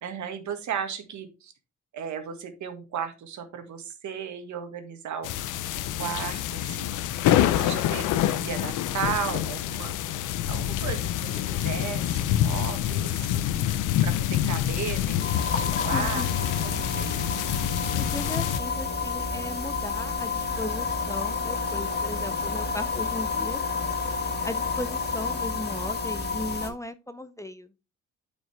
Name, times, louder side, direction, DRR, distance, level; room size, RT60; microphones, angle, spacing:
voice 1, 0.0-1.5 1.9-5.5 6.0-7.0 7.4-10.0 10.5-13.5 14.0-16.3 16.6-17.3, right 7 dB, 70° right, 7 dB, 1.8 m, -35 dB
sound 1, 5.2-18.6, left 11 dB, 85° left, 0.7 m, -26 dB
sound 2, 15.2-26.7, left 4 dB, 35° left, 2.0 m, -30 dB
voice 2, 15.9-16.3 17.9-23.6 24.4-27.7, left 1 dB, 10° left, 12 dB, 0.6 m, -36 dB
9.1 x 5.1 x 3.3 m, 0.29 s
cardioid pair, 90°, 30 cm